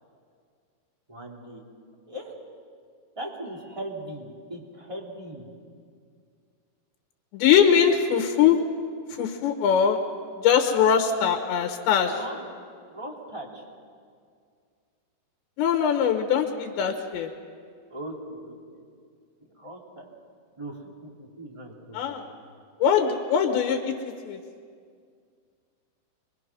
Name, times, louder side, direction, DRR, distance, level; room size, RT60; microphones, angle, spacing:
voice 1, 1.1-1.6 2.1-2.3 3.2-5.5 12.1-12.5 12.9-13.6 17.9-18.8 19.5-20.1 20.6-22.4, right 1 dB, 10° right, -1 dB, 2.0 m, -39 dB
voice 2, 7.3-8.6 9.2-10.0 10.4-12.1 15.6-17.3 21.9-22.2 22.8-24.0 24.3-24.4, left 8 dB, 90° left, 3 dB, 3.5 m, -21 dB
24.5 x 23.5 x 6.1 m, 2.2 s
omnidirectional pair, 4.9 m